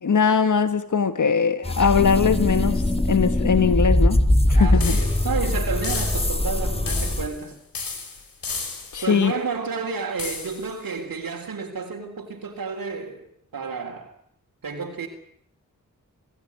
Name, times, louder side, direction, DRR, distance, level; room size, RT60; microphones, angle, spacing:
voice 1, 0.0-4.2 4.5-5.0 8.9-9.3, left 6 dB, 60° left, 1.4 m, -21 dB
sound 1, 1.6-7.3, left 1 dB, 15° left, 2.1 m, -21 dB
voice 2, 4.5-7.6 9.0-14.1 14.6-15.1, right 5 dB, 85° right, 3.6 m, -31 dB
sound 2, 4.8-5.4 5.8-6.5 6.9-7.4 7.7-9.1 10.2-10.7, left 4 dB, 85° left, 4.9 m, -33 dB
27.5 x 15.5 x 9.6 m
cardioid pair, 55°, 34 cm